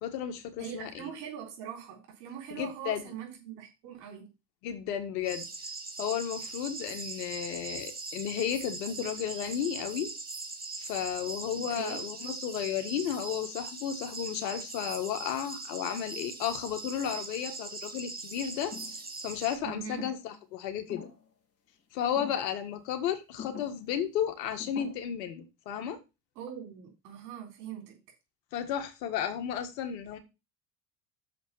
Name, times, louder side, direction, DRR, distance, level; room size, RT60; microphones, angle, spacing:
voice 1, 0.0-1.0 2.5-3.1 4.6-5.5 6.0-10.1 10.8-21.1 21.9-26.0 28.5-30.2, left 9 dB, 70° left, 1.9 m, -33 dB
voice 2, 0.6-4.3 11.6-12.0 19.6-20.1 26.4-28.0, right 8 dB, 70° right, 3.8 m, -42 dB
sound 1, 5.2-19.6, right 3 dB, 20° right, 2.3 m, -41 dB
sound 2, 18.7-19.1 19.8-20.4 20.9-21.3 22.1-22.5 23.4-23.8 24.6-24.9, left 7 dB, 30° left, 2.7 m, -44 dB
6.9 x 5.1 x 6.9 m
hypercardioid pair, 70°, 50 cm